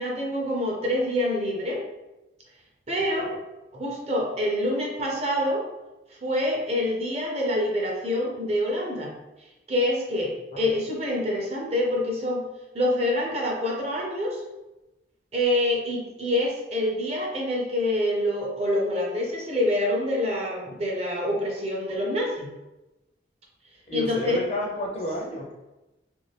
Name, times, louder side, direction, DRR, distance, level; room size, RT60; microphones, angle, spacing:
voice 1, 0.0-1.8 2.9-3.3 3.7-5.7 6.2-9.1 9.7-12.4 12.7-14.4 15.3-22.5 23.9-24.4, left 1 dB, 35° right, -2 dB, 0.6 m, -26 dB
voice 2, 23.9-25.5, left 1 dB, 35° left, -1 dB, 0.5 m, -31 dB
2.5 x 2.2 x 3.3 m, 1.0 s
head